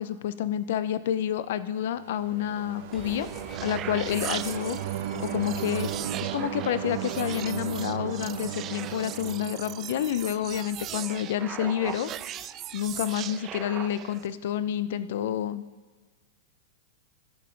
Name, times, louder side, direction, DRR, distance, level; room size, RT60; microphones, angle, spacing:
voice 1, 0.0-3.3 3.6-4.8 5.2-5.9 6.3-12.1 12.7-15.6, left 10 dB, 65° left, 15 dB, 0.4 m, -29 dB
sound 1, 2.0-10.7, right 9 dB, 60° right, 0.8 m, -35 dB
sound 2, 2.8-14.3, right 11 dB, 30° right, 0.3 m, -39 dB
sound 3, 2.9-8.5, left 2 dB, 20° left, 2.1 m, -52 dB
15.0 x 5.6 x 3.9 m, 1.4 s
hypercardioid pair, 130°, 0 cm